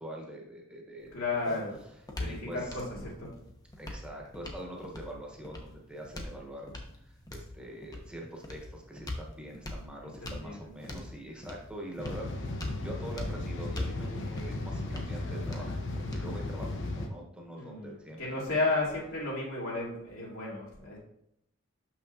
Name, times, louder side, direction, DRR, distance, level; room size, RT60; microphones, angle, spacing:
voice 1, 0.0-1.1 1.4-1.6 2.2-2.8 3.8-18.7, equal, 5° right, -1 dB, 1.2 m, -44 dB
sound 1, 1.0-17.0, left 1 dB, 20° left, 0.8 m, -43 dB
voice 2, 1.1-1.7 2.1-3.3 10.2-10.6 10.9-11.0 17.6-21.0, left 3 dB, 80° left, -5 dB, 2.6 m, -33 dB
sound 2, 12.0-17.1, left 2 dB, 60° left, 0.9 m, -36 dB
6.6 x 5.8 x 2.8 m, 0.77 s
head